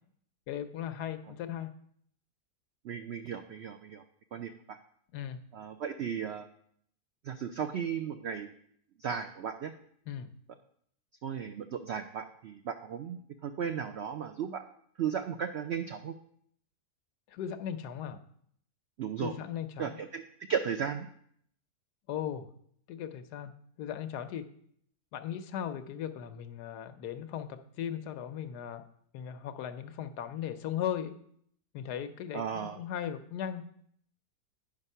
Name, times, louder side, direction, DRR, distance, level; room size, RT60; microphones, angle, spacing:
voice 1, 0.5-1.7 5.1-5.4 10.1-10.3 17.3-18.2 19.2-20.0 22.1-22.5 22.9-24.4 25.1-28.8 29.1-31.1 31.7-33.6, left 9 dB, 80° left, 10 dB, 1.2 m, -37 dB
voice 2, 2.8-4.0 4.3-4.8 5.5-6.5 7.2-8.5 9.0-9.7 11.2-14.6 15.0-16.1 19.0-19.3 19.8-20.2 20.5-21.1 32.3-32.8, right 7 dB, 80° right, 7 dB, 0.6 m, -35 dB
9.6 x 5.3 x 5.5 m, 0.66 s
omnidirectional pair, 1.7 m